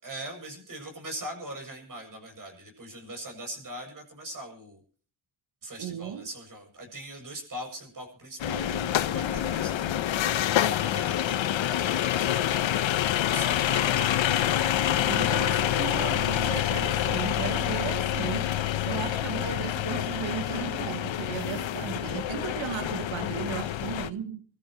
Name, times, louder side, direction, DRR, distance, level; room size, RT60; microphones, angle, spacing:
voice 1, 0.0-4.8 5.6-10.3 10.7-12.5 13.2-14.6, right 1 dB, 40° right, 7.7 m, -41 dB
voice 2, 5.8-6.3 15.1-18.5 18.8-24.4, right 8 dB, 75° right, 1.5 m, -35 dB
sound 1, 8.4-24.1, left 11 dB, 70° left, 1.0 m, -27 dB
28.0 x 13.5 x 3.1 m
wide cardioid pair, 150°, 47 cm